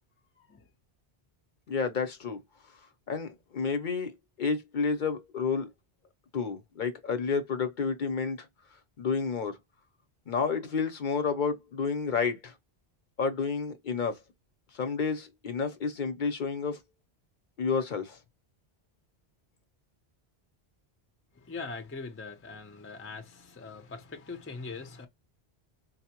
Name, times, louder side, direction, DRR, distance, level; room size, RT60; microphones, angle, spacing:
voice 1, 0.3-0.7 21.3-25.1, left 4 dB, 20° left, 0.4 m, -42 dB
voice 2, 1.7-2.4 3.1-4.1 4.4-5.7 6.3-8.4 9.0-9.6 10.3-12.5 13.2-14.2 14.7-16.8 17.6-18.2, left 5 dB, 55° left, 0.7 m, -30 dB
4.1 x 2.0 x 2.8 m
omnidirectional pair, 1.1 m